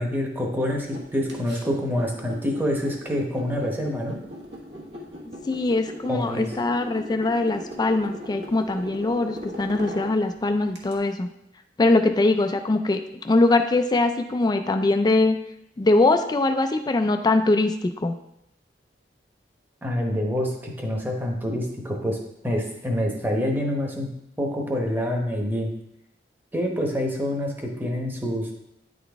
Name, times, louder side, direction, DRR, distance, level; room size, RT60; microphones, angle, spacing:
voice 1, 0.0-4.2 6.1-6.5 19.8-22.2 22.4-24.1 24.4-25.7 26.5-28.5, equal, 10° right, 0 dB, 1.0 m, -26 dB
sound 1, 0.6-11.0, equal, 70° right, 1.3 m, -39 dB
voice 2, 5.5-11.3 11.8-13.0 13.2-15.4 15.8-18.2, left 2 dB, 25° left, 7 dB, 0.3 m, -22 dB
9.3 x 3.9 x 3.5 m, 0.80 s
head